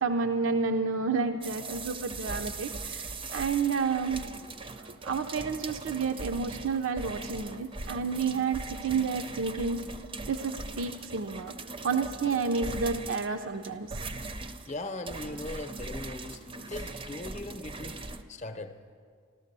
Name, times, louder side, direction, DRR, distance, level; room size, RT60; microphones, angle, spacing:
voice 1, 0.0-4.3 4.8-9.8 10.3-11.5 11.8-14.0, right 5 dB, 75° right, 6 dB, 0.5 m, -30 dB
sound 1, 1.4-18.2, right 3 dB, 25° right, 0.5 m, -40 dB
voice 2, 14.7-18.7, left 2 dB, 35° left, 8 dB, 0.7 m, -39 dB
14.0 x 13.0 x 6.7 m, 2.2 s
head